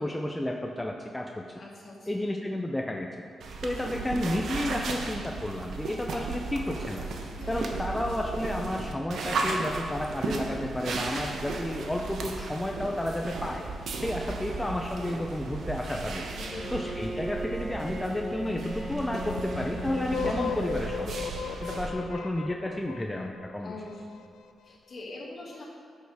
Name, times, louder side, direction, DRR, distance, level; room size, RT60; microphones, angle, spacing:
voice 1, 0.0-1.6 2.1-3.2 3.6-7.1 7.5-13.6 14.0-16.2 16.7-21.3 21.6-23.8, left 1 dB, 10° left, 1 dB, 0.6 m, -32 dB
voice 2, 1.6-2.1 3.8-4.0 7.4-7.9 14.2-14.4 16.4-16.7 20.1-20.5 23.6-24.0 24.6-25.6, left 2 dB, 50° left, -4 dB, 2.3 m, -42 dB
sound 1, 3.4-21.9, right 3 dB, 75° right, 0.9 m, -35 dB
Bowed string instrument, 16.4-21.8, right 1 dB, 5° right, 1.0 m, -39 dB
sound 2, 18.9-23.8, left 6 dB, 90° left, 0.4 m, -35 dB
11.0 x 6.5 x 3.5 m, 2.1 s
cardioid pair, 75°, 0 cm